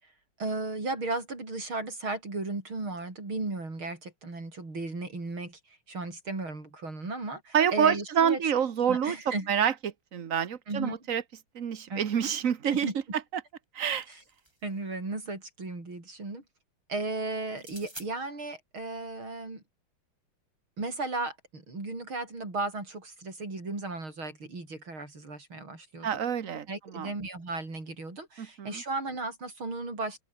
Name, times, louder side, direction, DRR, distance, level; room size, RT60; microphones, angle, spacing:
voice 1, 0.4-8.4 8.9-9.5 10.7-11.0 11.9-12.3 12.7-12.9 14.1-14.2 14.6-16.4 16.9-19.6 20.8-26.2 26.7-30.2, right 3 dB, 80° right, 7.5 m, -35 dB
voice 2, 7.5-9.2 9.5-11.2 11.5-12.9 13.3-13.4 13.7-14.1 26.0-27.1 28.4-28.8, right 8 dB, 45° right, 1.4 m, -27 dB
sound 1, 13.5-14.8 17.5-18.1, right 1 dB, 10° right, 6.4 m, -48 dB
open air
omnidirectional pair, 2.2 m